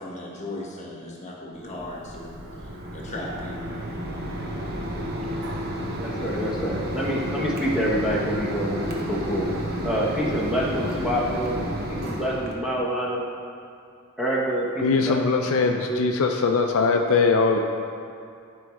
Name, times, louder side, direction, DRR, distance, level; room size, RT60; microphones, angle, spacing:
voice 1, 0.0-3.5, left 1 dB, 35° left, -3 dB, 1.3 m, -37 dB
Mechanisms, 1.6-12.5, equal, 45° right, 0.8 m, -31 dB
voice 2, 6.0-9.5 9.8-11.6 11.9-13.2 14.2-16.1, equal, 5° right, -6 dB, 1.0 m, -27 dB
voice 3, 14.8-17.6, left 4 dB, 65° left, 3 dB, 0.4 m, -21 dB
11.5 x 4.7 x 3.1 m, 2.5 s
head